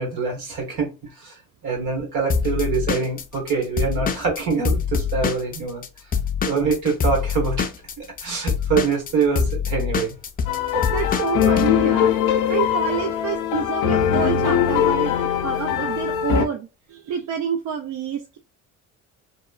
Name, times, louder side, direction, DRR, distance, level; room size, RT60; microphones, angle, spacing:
voice 1, 0.0-1.4 1.6-5.8 6.4-7.7 8.0-10.2, right 5 dB, 85° right, 1.3 m, -24 dB
Drum kit / Drum, 2.3-5.9 6.1-11.7, left 6 dB, 30° left, 0.4 m, -24 dB
sound 1, 10.5-16.5, left 9 dB, 85° left, 0.5 m, -21 dB
voice 2, 10.7-12.1 12.5-18.4, right 7 dB, 70° right, 0.5 m, -28 dB
2.9 x 2.1 x 2.3 m
cardioid pair, 90°, 30 cm